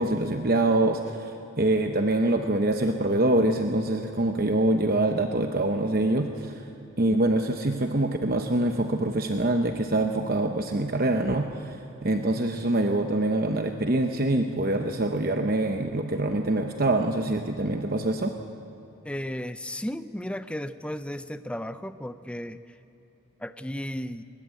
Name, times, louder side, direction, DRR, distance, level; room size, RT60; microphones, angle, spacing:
voice 1, 0.0-6.7 7.0-18.3, right 2 dB, 40° right, 5 dB, 0.8 m, -25 dB
voice 2, 19.0-22.6 23.4-24.2, equal, 5° left, 11 dB, 0.5 m, -34 dB
21.0 x 20.0 x 8.6 m, 3.0 s
head